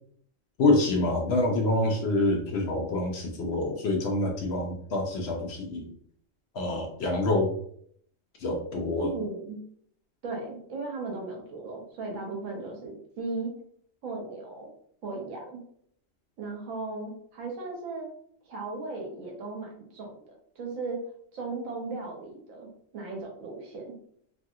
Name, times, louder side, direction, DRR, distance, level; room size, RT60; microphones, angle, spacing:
voice 1, 0.6-5.9 6.5-7.5 8.4-9.1, left 2 dB, 60° left, 1 dB, 0.7 m, -26 dB
voice 2, 9.0-9.6 10.2-13.5 14.0-14.7 15.0-15.6 16.4-18.1 18.5-21.0 21.3-22.7 22.9-23.9, right 3 dB, 85° right, 0 dB, 1.3 m, -36 dB
3.1 x 2.4 x 2.7 m, 0.64 s
omnidirectional pair, 1.3 m